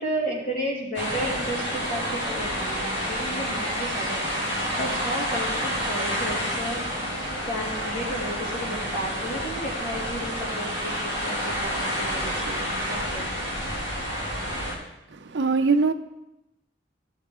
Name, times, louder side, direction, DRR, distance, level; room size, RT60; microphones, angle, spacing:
voice 1, 0.0-4.3 4.7-6.8 7.4-13.3, right 1 dB, 50° left, -3 dB, 2.5 m, -33 dB
sound 1, 0.9-14.7, equal, 75° left, 2.3 m, -29 dB
voice 2, 15.2-15.9, right 4 dB, 70° right, 8 dB, 0.6 m, -21 dB
13.5 x 6.4 x 3.6 m, 0.90 s
head